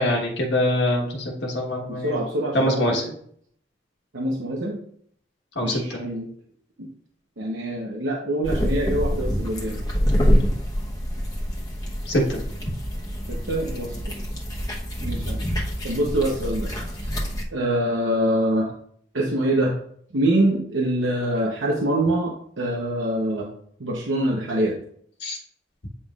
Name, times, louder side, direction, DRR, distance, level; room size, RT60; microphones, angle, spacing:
voice 1, 0.0-2.2 2.5-3.0 5.6-6.0 12.1-12.4 25.2-25.4, left 1 dB, 65° left, -1 dB, 1.3 m, -23 dB
voice 2, 2.0-3.1 4.1-4.8 5.6-6.3 7.4-9.8 13.3-14.1 15.0-15.4 15.8-16.7 17.0-17.1 17.5-18.7 19.1-19.7 20.1-23.5 23.8-24.7, right 1 dB, 90° right, -2 dB, 0.9 m, -24 dB
sound 1, 8.4-17.4, equal, 20° left, 1.0 m, -26 dB
8.5 x 5.5 x 2.4 m, 0.64 s
head